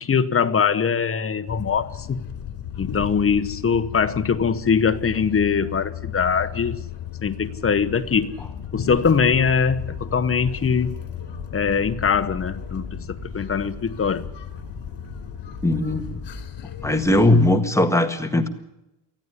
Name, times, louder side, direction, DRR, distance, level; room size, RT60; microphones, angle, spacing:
voice 1, 0.0-2.2 2.8-6.8 7.2-8.4 8.7-11.0 11.5-14.3, left 6 dB, 30° left, 1.0 m, -22 dB
sound 1, 1.5-17.6, left 10 dB, 70° left, 3.2 m, -35 dB
sound 2, 8.9-16.5, equal, 35° right, 6.6 m, -41 dB
voice 2, 15.6-16.2 16.8-18.5, left 1 dB, 5° left, 1.6 m, -19 dB
19.5 x 14.0 x 9.7 m
cardioid pair, 140°, 43 cm